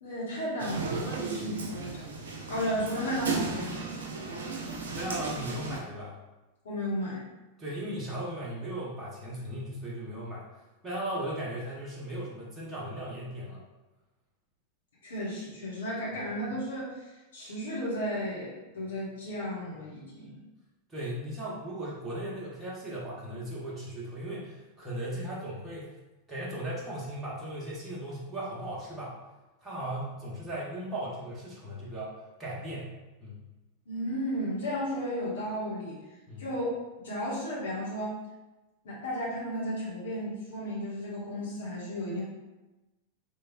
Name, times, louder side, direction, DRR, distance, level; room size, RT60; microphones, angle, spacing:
voice 1, 0.0-2.0 2.5-3.9 6.6-7.2 15.0-20.4 33.9-36.0 36.4-36.7 37.0-38.2 38.8-42.2, equal, 65° left, -6 dB, 1.2 m, -34 dB
sound 1, 0.6-5.8, right 4 dB, 65° right, 0.5 m, -35 dB
voice 2, 4.9-6.2 7.6-10.4 10.8-13.6 20.9-25.9 26.3-29.1 29.6-32.1 32.4-32.9 33.2-33.4 36.3-36.5, right 1 dB, 15° right, -7 dB, 1.0 m, -37 dB
3.2 x 3.2 x 2.3 m, 1.1 s
figure-of-eight pair, 90°, 0 cm